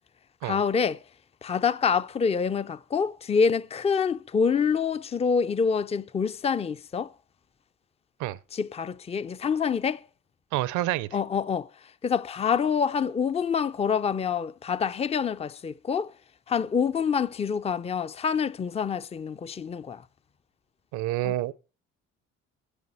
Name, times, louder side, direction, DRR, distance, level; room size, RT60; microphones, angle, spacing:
voice 1, 0.4-1.0 1.4-7.1 8.5-10.0 11.1-11.7 12.0-16.1 16.5-20.0 21.2-21.5, left 6 dB, 20° left, 0.5 m, -26 dB
voice 2, 10.5-11.1 20.9-21.5, right 15 dB, 75° right, 0.7 m, -28 dB
10.0 x 8.5 x 5.5 m
supercardioid pair, 70°, 30 cm